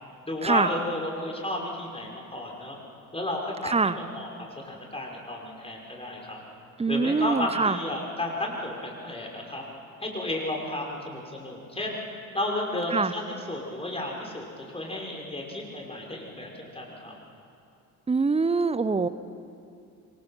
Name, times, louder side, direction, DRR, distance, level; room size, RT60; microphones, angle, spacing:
voice 1, 0.3-2.8 3.1-6.4 6.9-9.6 10.0-12.0 12.3-17.1, left 1 dB, 15° left, -1 dB, 5.7 m, -33 dB
voice 2, 3.6-4.0 6.8-7.8 12.9-13.1 18.1-19.1, right 4 dB, 15° right, 16 dB, 0.8 m, -24 dB
26.5 x 23.5 x 5.8 m, 2.5 s
figure-of-eight pair, 50°, 44 cm